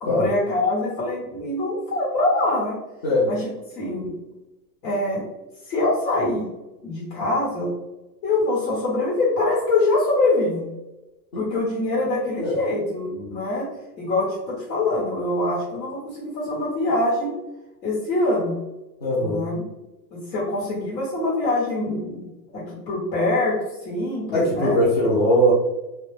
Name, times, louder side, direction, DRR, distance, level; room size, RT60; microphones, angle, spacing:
voice 1, 0.0-2.7 3.3-3.5 3.7-4.1 4.8-5.2 5.7-6.5 6.8-7.7 8.2-10.7 11.3-13.7 14.0-17.4 17.8-18.6 19.2-19.6 20.1-22.2 22.5-24.8, left 2 dB, 90° left, -5 dB, 1.2 m, -24 dB
voice 2, 19.0-19.4 24.3-25.5, equal, 30° left, -8 dB, 0.3 m, -20 dB
2.2 x 2.1 x 3.1 m, 0.99 s
supercardioid pair, 150°, 50 cm